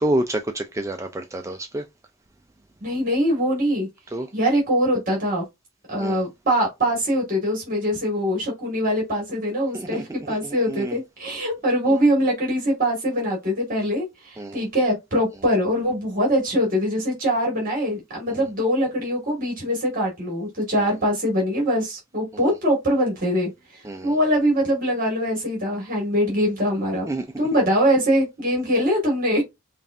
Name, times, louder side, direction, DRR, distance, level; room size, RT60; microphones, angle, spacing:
voice 1, 0.0-1.8 4.1-4.3 6.0-6.2 9.7-10.0 10.4-11.0 11.9-12.0 14.4-14.7 18.3-18.4 20.7-20.9 22.3-22.4 23.8-24.2 27.1-27.3, right 1 dB, 15° right, 0.3 m, -28 dB
voice 2, 2.8-3.9 4.3-5.4 5.9-27.1 27.4-29.4, equal, 40° right, 1.8 m, -23 dB
5.2 x 2.4 x 2.6 m
head